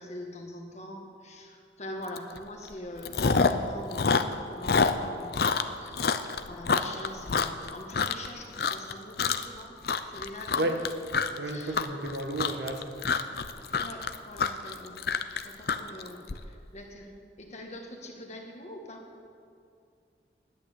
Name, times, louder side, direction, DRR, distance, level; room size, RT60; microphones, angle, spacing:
voice 1, 0.0-4.2 4.5-5.3 5.8-6.2 6.5-9.7 10.0-10.7 11.4-11.9 13.8-19.0, left 1 dB, 40° left, 1 dB, 1.6 m, -43 dB
Chewing mastication, 2.2-2.4 2.7-3.7 3.9-8.3 8.6-8.9 9.2-9.6 9.8-16.3, left 5 dB, 60° left, 0.6 m, -27 dB
voice 2, 11.4-13.2, right 1 dB, 75° right, 4 dB, 1.5 m, -32 dB
10.5 x 8.9 x 8.8 m, 2.4 s
head